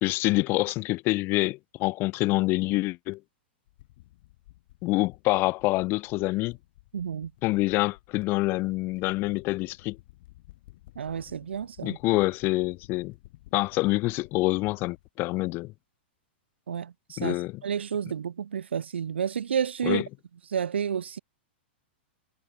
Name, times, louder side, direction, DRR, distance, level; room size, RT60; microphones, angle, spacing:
voice 1, 0.0-3.2 4.8-6.6 7.4-10.0 11.8-13.1 13.5-15.7 17.2-17.6 19.8-20.0, left 21 dB, 40° left, 0.7 m, -26 dB
sound 1, 3.7-15.1, left 17 dB, 60° left, 4.3 m, -55 dB
voice 2, 6.9-7.3 11.0-12.0 16.7-17.3 17.6-20.0 20.5-21.2, right 8 dB, 90° right, 0.8 m, -30 dB
hypercardioid pair, 120°, 6 cm